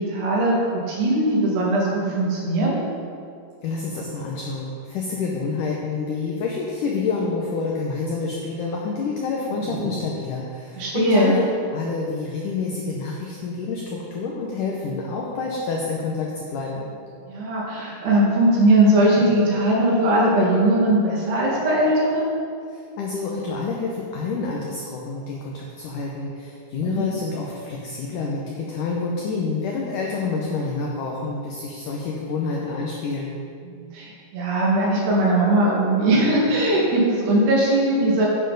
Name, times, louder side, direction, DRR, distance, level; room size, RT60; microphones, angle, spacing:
voice 1, 0.0-2.8 9.7-9.9 10.8-11.4 17.3-22.3 26.9-27.1 33.6-38.3, right 1 dB, 80° right, -4 dB, 4.1 m, -20 dB
voice 2, 3.6-11.5 11.7-16.9 22.7-33.4, left 4 dB, 75° left, -2 dB, 2.0 m, -28 dB
10.5 x 8.9 x 4.0 m, 2.3 s
omnidirectional pair, 4.6 m